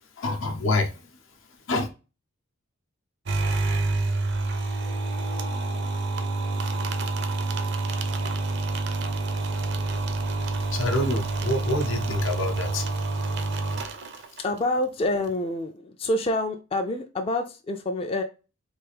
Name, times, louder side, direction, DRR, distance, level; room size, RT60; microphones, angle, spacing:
voice 1, 0.0-1.2 1.7-1.9 10.6-13.0 13.4-13.9 14.1-14.3, left 2 dB, 75° left, 4 dB, 0.7 m, -28 dB
sound 1, 3.2-14.6, right 3 dB, 60° right, 0.5 m, -28 dB
voice 2, 14.4-18.2, left 1 dB, 30° left, 4 dB, 0.4 m, -27 dB
3.4 x 2.4 x 3.3 m, 0.31 s
head